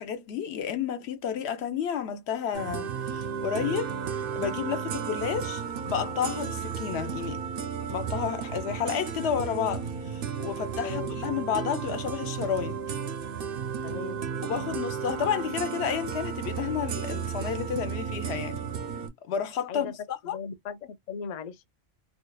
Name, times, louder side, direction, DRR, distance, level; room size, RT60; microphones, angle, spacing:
voice 1, 0.0-7.4 7.9-12.8 14.4-18.6 19.3-19.9 20.3-20.4, left 8 dB, 65° left, 0.7 m, -31 dB
sound 1, 2.5-19.1, right 7 dB, 60° right, 0.6 m, -33 dB
voice 2, 10.8-11.2 13.8-14.2 19.7-20.0 20.2-21.7, left 6 dB, 85° left, 0.3 m, -38 dB
2.7 x 2.3 x 2.2 m
omnidirectional pair, 1.4 m